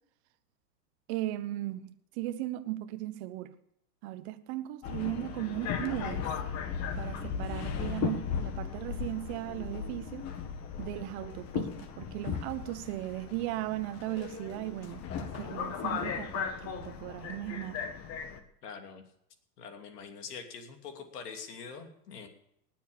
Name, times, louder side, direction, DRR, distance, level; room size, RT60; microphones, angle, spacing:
voice 1, 1.1-3.5 4.0-6.4 7.0-10.3 10.8-17.8, right 15 dB, 40° right, 1.1 m, -37 dB
Subway metro underground, 4.8-18.4, left 7 dB, 30° left, 1.5 m, -37 dB
voice 2, 18.6-19.0 19.6-22.3, left 6 dB, 65° left, 3.0 m, -44 dB
19.5 x 7.4 x 7.1 m
hypercardioid pair, 125°, 49 cm